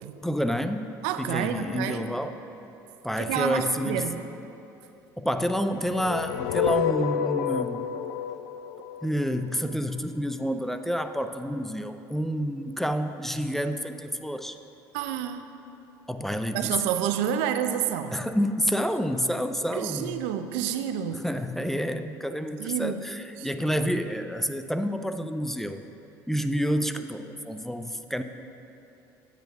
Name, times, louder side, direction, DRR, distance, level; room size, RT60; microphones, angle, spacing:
voice 1, 0.2-2.4 3.0-4.1 5.2-7.9 9.0-14.6 16.1-16.7 18.1-20.2 21.1-25.8 26.3-28.2, equal, 5° left, 8 dB, 0.5 m, -29 dB
voice 2, 1.0-2.1 3.2-4.2 14.9-15.5 16.5-18.2 19.7-21.2 22.6-23.0 23.4-23.5, right 9 dB, 75° right, 9 dB, 0.5 m, -29 dB
sound 1, 5.7-9.8, left 8 dB, 85° left, 0.4 m, -29 dB
8.8 x 5.2 x 6.5 m, 2.9 s
hypercardioid pair, 70°, 10 cm